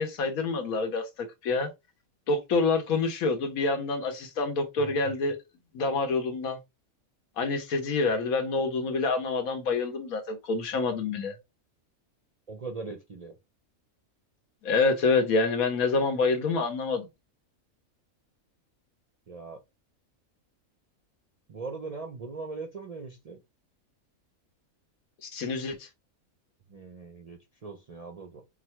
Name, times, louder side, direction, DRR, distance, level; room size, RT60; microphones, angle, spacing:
voice 1, 0.0-1.7 2.3-5.4 5.7-6.6 7.4-11.3 14.6-17.1 25.2-25.9, left 3 dB, 85° left, 1.4 m, -27 dB
voice 2, 12.5-13.3 19.3-19.6 21.5-23.4 26.7-28.4, right 4 dB, 60° right, 0.4 m, -40 dB
4.7 x 2.1 x 4.4 m
omnidirectional pair, 1.4 m